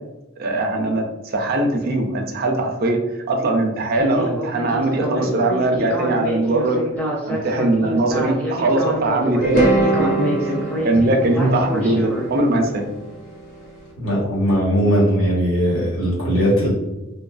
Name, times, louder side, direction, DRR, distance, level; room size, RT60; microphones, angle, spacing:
voice 1, 0.4-6.8 7.3-12.9, right 2 dB, 45° right, 3 dB, 0.4 m, -21 dB
Speech synthesizer, 3.9-12.3, equal, 5° left, 0.5 m, -27 dB
sound 1, 9.4-13.6, right 2 dB, 40° left, 0.8 m, -23 dB
voice 2, 14.0-16.7, equal, 70° left, -5 dB, 1.1 m, -19 dB
2.7 x 2.3 x 2.4 m, 1.0 s
head